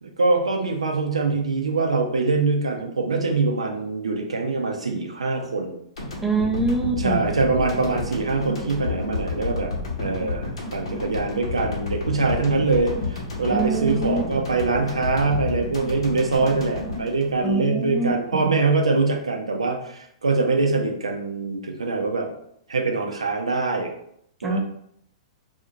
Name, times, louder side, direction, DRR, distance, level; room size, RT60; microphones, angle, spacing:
voice 1, 0.0-5.8 7.0-9.7 10.0-22.3 22.7-23.9 24.4-24.6, right 3 dB, 80° right, 3 dB, 0.5 m, -23 dB
sound 1, 6.0-18.2, left 3 dB, 70° left, 0.8 m, -31 dB
voice 2, 6.2-7.3 13.5-14.2 17.4-18.6 24.4-24.6, right 3 dB, 5° right, 1 dB, 0.4 m, -25 dB
2.5 x 2.4 x 2.9 m, 0.71 s
figure-of-eight pair, 110°, 3 cm